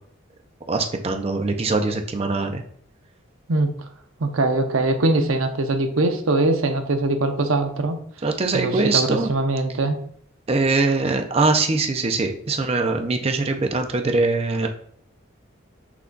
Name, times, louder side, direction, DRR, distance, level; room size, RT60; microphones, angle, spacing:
voice 1, 0.7-2.6 8.2-9.3 10.5-14.7, right 3 dB, 30° right, 5 dB, 0.4 m, -22 dB
voice 2, 4.2-8.0 8.5-10.0, right 2 dB, 75° right, 7 dB, 0.6 m, -22 dB
5.9 x 2.3 x 3.8 m, 0.63 s
head